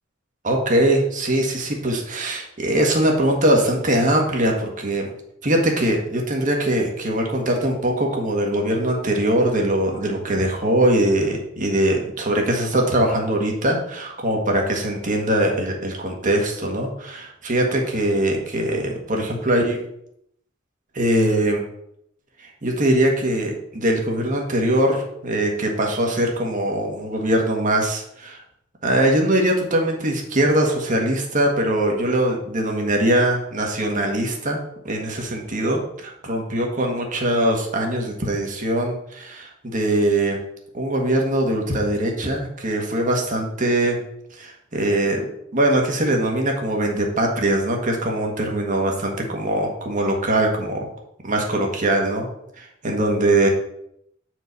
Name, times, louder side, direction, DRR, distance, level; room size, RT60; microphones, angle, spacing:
voice 1, 0.4-5.1 5.4-19.8 20.9-21.6 22.4-28.4 28.8-40.4 40.7-44.0 44.4-45.2 45.5-50.9 51.2-52.3 52.6-53.5, right 1 dB, 40° right, 1 dB, 1.4 m, -22 dB
8.1 x 4.7 x 4.0 m, 0.75 s
head